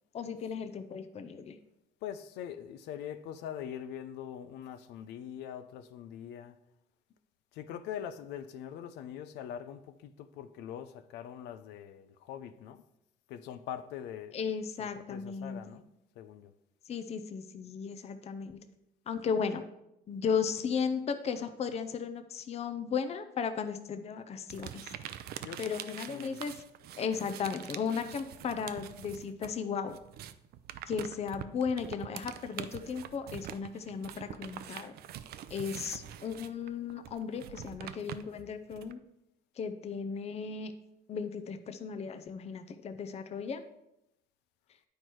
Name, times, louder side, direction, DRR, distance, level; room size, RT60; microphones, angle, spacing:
voice 1, 0.1-1.6 14.3-15.6 16.9-18.6 19.1-19.6 20.1-24.9 25.6-26.6 27.0-30.0 30.9-34.9 35.5-39.0 39.6-40.7 41.1-43.6, left 6 dB, 40° left, 0.6 m, -35 dB
voice 2, 2.0-6.6 7.5-12.8 13.3-14.4 14.8-15.9 16.2-16.5 25.4-26.4 43.3-43.4, left 9 dB, 85° left, 0.6 m, -43 dB
sound 1, 24.5-29.6 29.8-38.9, right 11 dB, 65° right, 0.5 m, -45 dB
9.5 x 4.5 x 4.6 m
cardioid pair, 110°, 17 cm